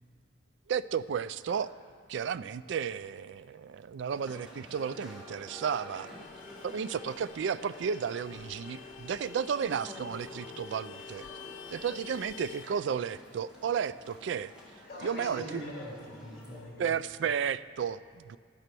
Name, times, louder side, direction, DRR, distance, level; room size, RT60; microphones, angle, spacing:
voice 1, 0.7-1.7 2.1-6.1 6.6-11.3 11.7-14.5 15.0-15.6 16.8-18.4, right 7 dB, 65° right, 16 dB, 0.3 m, -33 dB
sound 1, 4.1-16.6, left 1 dB, 5° right, 1.9 m, -50 dB
Vehicle horn car horn honking, 6.1-12.7, left 6 dB, 80° left, 0.5 m, -48 dB
voice 2, 14.9-16.9, left 1 dB, 50° left, -3 dB, 3.1 m, -43 dB
10.5 x 9.7 x 6.1 m, 2.1 s
head